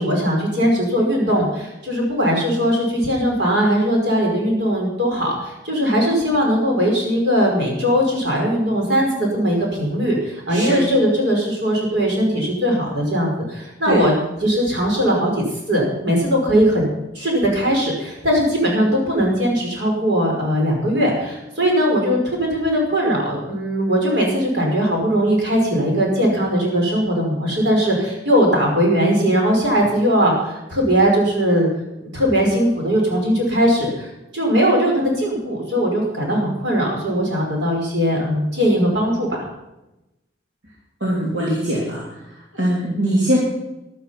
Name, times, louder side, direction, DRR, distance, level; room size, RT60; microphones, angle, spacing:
voice 1, 0.0-31.7 32.0-34.1 34.3-39.3, equal, 70° right, -1 dB, 5.5 m, -19 dB
voice 2, 10.5-10.9 13.8-14.1 41.0-42.0 42.5-43.4, equal, 85° right, -5 dB, 3.5 m, -21 dB
13.0 x 12.0 x 5.9 m, 0.94 s
head